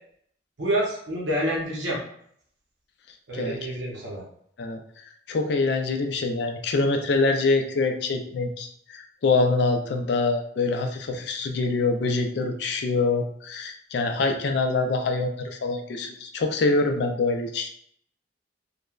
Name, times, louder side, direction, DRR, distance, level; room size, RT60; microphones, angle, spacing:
voice 1, 0.6-2.0 3.3-4.2, right 1 dB, 80° right, -3 dB, 0.7 m, -27 dB
voice 2, 5.3-17.7, left 3 dB, 65° left, 5 dB, 0.4 m, -25 dB
3.1 x 2.1 x 2.3 m, 0.67 s
head